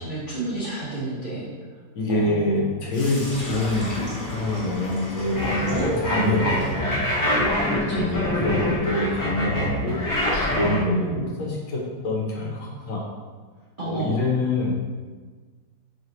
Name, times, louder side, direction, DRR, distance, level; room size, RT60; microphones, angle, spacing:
voice 1, 0.0-1.5 2.1-2.6 5.7-6.7 7.9-8.3 10.6-11.3 13.8-14.2, right 2 dB, 65° right, -9 dB, 0.5 m, -29 dB
voice 2, 1.9-4.0 4.3-5.7 6.0-7.0 7.9-9.9 10.5-13.0 13.8-14.7, left 2 dB, 70° left, -2 dB, 1.3 m, -26 dB
Sink (filling or washing), 2.9-10.8, left 1 dB, 35° left, 1.3 m, -36 dB
sound 1, 5.3-10.8, left 1 dB, 20° left, 0.6 m, -25 dB
4.9 x 2.6 x 3.0 m, 1.4 s
omnidirectional pair, 2.1 m